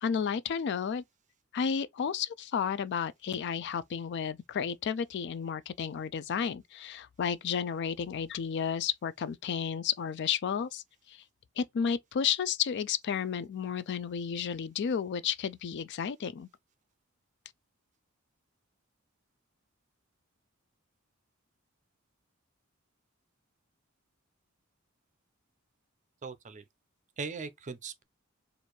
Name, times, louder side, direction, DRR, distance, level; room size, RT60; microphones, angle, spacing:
voice 1, 0.0-1.0 1.5-11.2 11.6-16.5, left 7 dB, 55° left, 0.4 m, -32 dB
voice 2, 26.2-26.6 27.2-28.0, right 4 dB, 35° right, 0.5 m, -39 dB
4.4 x 2.5 x 3.0 m
head